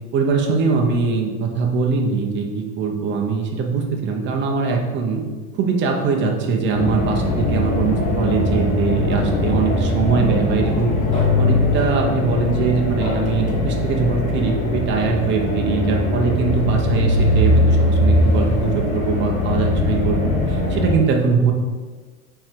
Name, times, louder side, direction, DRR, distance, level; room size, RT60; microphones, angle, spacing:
voice 1, 0.1-5.2 5.5-21.5, right 5 dB, 25° right, 1 dB, 0.8 m, -22 dB
sound 1, 6.7-21.0, left 1 dB, 15° left, 0.8 m, -20 dB
5.5 x 4.5 x 4.6 m, 1.4 s
supercardioid pair, 160°, 43 cm